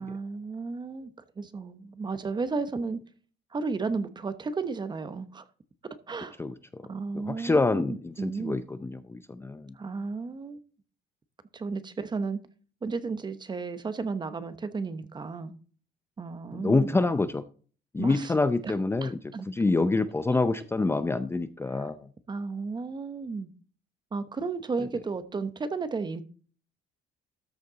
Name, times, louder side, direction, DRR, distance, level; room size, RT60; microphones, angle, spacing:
voice 1, 0.0-3.0 3.5-5.4 6.1-6.4 6.8-8.6 9.7-10.6 11.5-12.4 12.8-15.5 16.2-17.0 18.0-18.3 18.6-18.7 19.0-19.5 21.7-21.9 22.3-23.5 24.1-26.2, right 4 dB, 25° right, 1.0 m, -33 dB
voice 2, 6.4-6.8 7.1-9.8 16.5-17.4 17.9-19.2 19.5-22.1, left 3 dB, 15° left, 0.5 m, -27 dB
13.5 x 6.5 x 4.0 m
cardioid pair, 110°, 17 cm